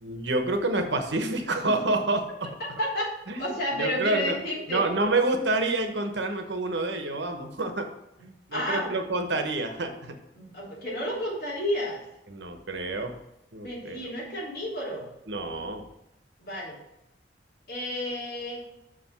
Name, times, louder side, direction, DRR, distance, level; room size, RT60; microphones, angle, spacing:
voice 1, 0.0-2.5 3.3-3.5 3.8-4.3 4.7-7.9 8.5-10.1 12.3-13.1 13.5-14.0 15.3-15.8, right 2 dB, 75° right, 5 dB, 1.1 m, -28 dB
voice 2, 2.8-4.9 8.2-8.9 10.3-12.0 13.6-15.1 16.4-16.8 17.7-18.6, equal, 55° left, -5 dB, 3.3 m, -31 dB
6.3 x 5.1 x 5.9 m, 0.87 s
head